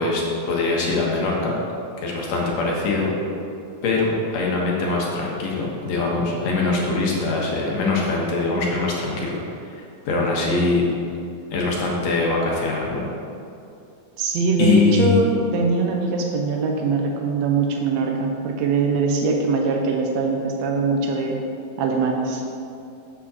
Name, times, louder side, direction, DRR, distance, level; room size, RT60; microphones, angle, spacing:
voice 1, 0.0-1.5 2.0-3.1 3.8-9.4 9.7-10.8 11.5-13.0 14.6-15.2, left 3 dB, 65° left, -2 dB, 2.2 m, -22 dB
voice 2, 14.2-21.4 21.8-22.4, right 4 dB, 80° right, 1 dB, 1.5 m, -22 dB
6.7 x 5.2 x 6.8 m, 2.6 s
omnidirectional pair, 3.8 m